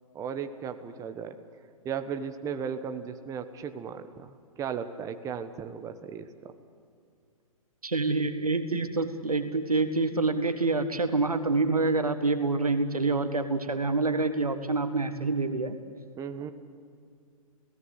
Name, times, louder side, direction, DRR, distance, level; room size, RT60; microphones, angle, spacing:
voice 1, 0.1-1.4 1.8-6.5 16.2-16.5, right 7 dB, 15° right, 9 dB, 1.1 m, -36 dB
voice 2, 7.8-15.8, right 3 dB, 90° right, 9 dB, 1.7 m, -27 dB
28.0 x 17.5 x 8.1 m, 2.3 s
figure-of-eight pair, 120°, 18 cm